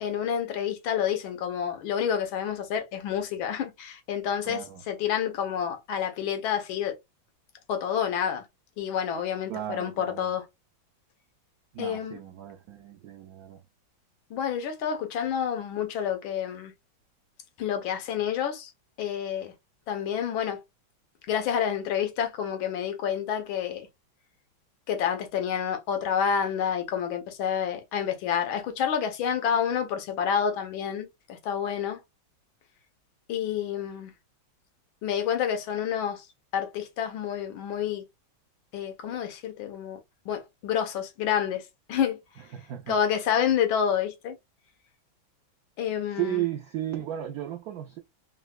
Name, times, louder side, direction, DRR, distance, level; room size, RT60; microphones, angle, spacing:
voice 1, 0.0-7.0 7.7-8.4 8.8-10.5 11.8-12.2 14.3-16.7 17.6-18.7 19.0-19.5 19.9-20.6 21.3-23.9 24.9-32.0 33.3-34.1 35.0-36.3 36.5-38.0 38.7-40.0 40.2-42.2 42.9-44.4 45.8-46.4, left 8 dB, 90° left, 1.6 m, -29 dB
voice 2, 4.5-4.8 9.5-10.3 11.7-13.6 42.5-43.0 46.1-48.0, right 12 dB, 85° right, 0.8 m, -34 dB
3.9 x 2.1 x 2.3 m
omnidirectional pair, 2.2 m